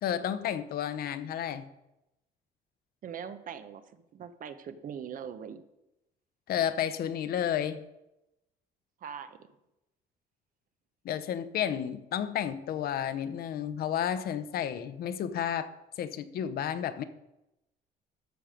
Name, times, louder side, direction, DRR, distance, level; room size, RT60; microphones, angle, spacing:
voice 1, 0.0-1.7 6.5-7.8 11.0-17.0, left 9 dB, 65° left, 12 dB, 0.9 m, -32 dB
voice 2, 3.0-5.6 9.0-9.4, right 7 dB, 55° right, 11 dB, 1.0 m, -41 dB
13.0 x 6.7 x 5.2 m, 0.92 s
cardioid pair, 110°, 17 cm